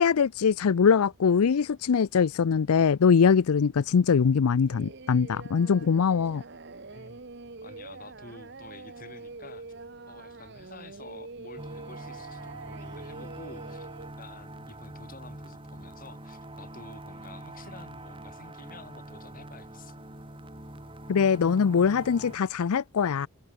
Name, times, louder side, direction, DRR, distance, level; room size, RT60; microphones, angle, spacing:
voice 1, 0.0-6.4 21.1-23.3, left 6 dB, 85° left, 0.5 m, -22 dB
Singing, 4.7-14.1, right 3 dB, 50° right, 1.0 m, -44 dB
voice 2, 7.6-9.7 10.1-13.9 14.2-20.0, left 2 dB, 40° left, 4.0 m, -49 dB
sound 1, 11.6-22.4, right 1 dB, 25° right, 4.6 m, -44 dB
head